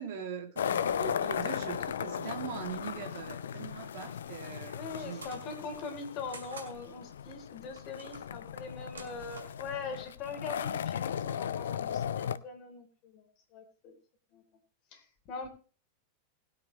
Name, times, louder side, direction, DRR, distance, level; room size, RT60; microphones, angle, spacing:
voice 1, 0.0-5.2, right 7 dB, 55° right, 2.5 m, -41 dB
sound 1, 0.6-12.4, left 8 dB, 65° left, 0.5 m, -36 dB
voice 2, 4.7-13.2 13.5-14.0 14.3-14.4 14.9-15.5, left 4 dB, 40° left, 3.7 m, -42 dB
sound 2, 5.1-5.5 6.3-6.7 7.7-8.3 8.8-9.6, right 3 dB, 70° right, 2.4 m, -48 dB
20.0 x 8.6 x 3.2 m
figure-of-eight pair, 90°, 0 cm